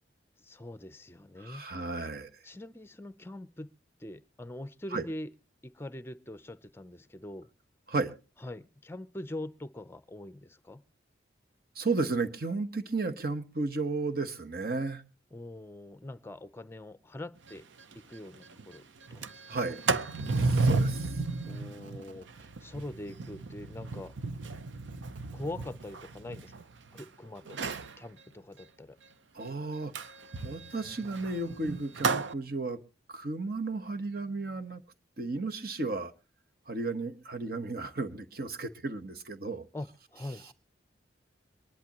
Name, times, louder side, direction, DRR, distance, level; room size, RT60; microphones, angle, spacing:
voice 1, 0.4-1.6 2.4-3.7 4.0-5.3 5.6-7.5 8.4-10.8 15.3-17.6 17.9-19.6 21.4-24.1 25.3-29.0 39.7-40.5, left 1 dB, 15° left, 0.6 m, -43 dB
voice 2, 1.4-2.4 4.9-5.0 7.9-8.1 11.7-15.0 19.5-19.8 20.4-21.1 29.3-29.9 30.4-32.8 33.1-34.8 35.2-36.1 36.7-39.6, right 3 dB, 55° right, 1.2 m, -33 dB
Sliding door, 17.5-17.6 17.9-18.0 18.3-18.6 19.0-27.0 27.5-27.9 29.9-32.3, right 3 dB, 85° right, 0.7 m, -33 dB
23.5 x 11.0 x 3.0 m
head